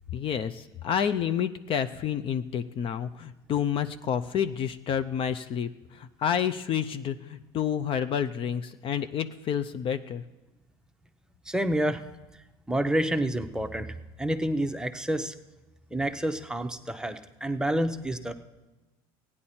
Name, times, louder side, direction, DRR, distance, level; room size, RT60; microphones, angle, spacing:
voice 1, 0.1-10.2, left 8 dB, 45° left, 11 dB, 0.5 m, -29 dB
voice 2, 11.5-12.0 12.7-13.9 14.2-15.3 15.9-18.3, right 1 dB, 5° right, 7 dB, 0.8 m, -28 dB
15.5 x 9.8 x 4.3 m, 1.1 s
supercardioid pair, 95°, 13 cm